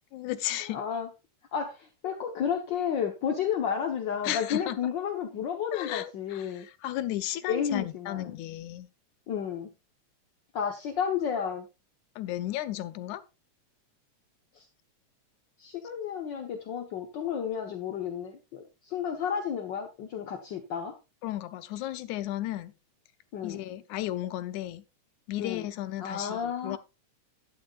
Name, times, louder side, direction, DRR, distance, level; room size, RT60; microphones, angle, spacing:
voice 1, 0.1-0.8 4.2-4.8 5.7-8.9 12.2-13.2 21.2-22.7 23.4-24.8 25.3-26.8, left 14 dB, 85° left, 2.3 m, -34 dB
voice 2, 0.7-1.1 1.5-6.7 7.5-8.3 9.3-9.7 10.5-11.7 14.5-14.7 15.6-20.9 23.3-23.6 25.4-25.7 26.0-26.8, left 7 dB, 60° left, 1.3 m, -32 dB
11.5 x 10.5 x 2.5 m
omnidirectional pair, 3.3 m